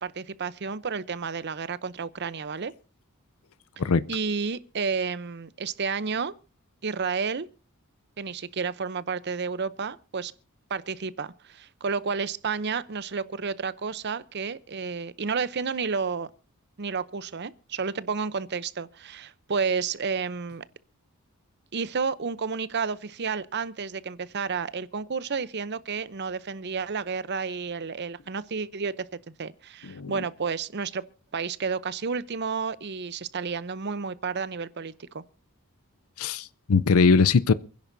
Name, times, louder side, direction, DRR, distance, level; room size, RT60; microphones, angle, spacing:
voice 1, 0.0-2.7 4.1-6.3 6.8-7.5 8.2-10.3 10.7-16.3 16.8-20.6 21.7-31.0 31.3-35.2, right 5 dB, 50° right, 0.7 m, -31 dB
voice 2, 29.8-30.2 36.2-37.5, left 4 dB, 75° left, 0.6 m, -21 dB
28.0 x 10.5 x 2.7 m
head